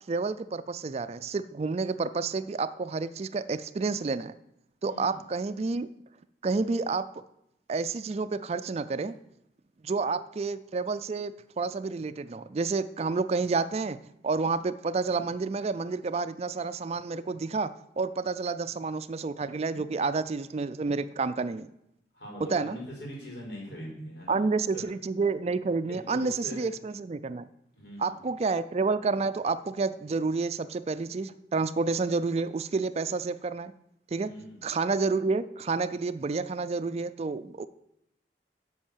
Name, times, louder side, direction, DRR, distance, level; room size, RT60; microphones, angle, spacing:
voice 1, 0.1-4.3 4.8-5.9 6.4-7.1 7.7-9.1 9.8-21.7 22.5-22.8 24.3-27.5 28.0-33.7 34.1-34.3 34.6-37.7, right 4 dB, 35° right, 14 dB, 0.4 m, -29 dB
voice 2, 4.8-5.2 22.1-24.8 25.9-26.7 27.7-28.3 34.3-34.7, equal, 80° left, -2 dB, 5.0 m, -42 dB
9.9 x 6.2 x 7.4 m, 0.82 s
head